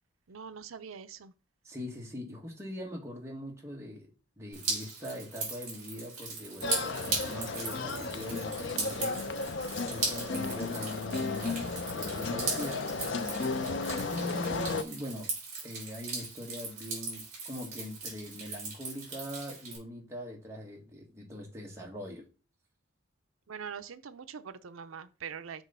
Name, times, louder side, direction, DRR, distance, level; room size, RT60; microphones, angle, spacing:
voice 1, 0.3-1.3 23.5-25.6, right 7 dB, 75° right, 0.5 m, -43 dB
voice 2, 1.6-4.1 4.4-9.2 9.8-12.8 14.1-15.3 15.6-22.3, left 1 dB, 15° right, 1.5 m, -42 dB
Drip, 4.5-19.8, right 4 dB, 35° right, 3.3 m, -38 dB
sound 1, 6.6-14.8, left 3 dB, 60° left, 0.5 m, -34 dB
6.2 x 3.1 x 5.4 m
head